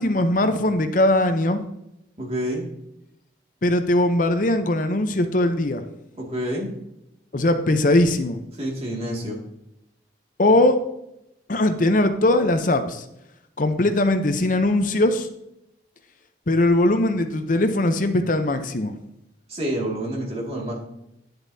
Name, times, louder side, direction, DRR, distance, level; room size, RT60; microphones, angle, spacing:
voice 1, 0.0-1.6 3.6-5.8 7.3-8.4 10.4-10.8 11.5-13.0 13.6-15.3 16.5-19.0, left 1 dB, 45° left, 8 dB, 0.7 m, -20 dB
voice 2, 2.2-2.7 6.2-6.7 8.6-9.4 19.5-20.8, right 1 dB, 35° right, -2 dB, 2.2 m, -28 dB
10.0 x 7.9 x 2.7 m, 0.85 s
head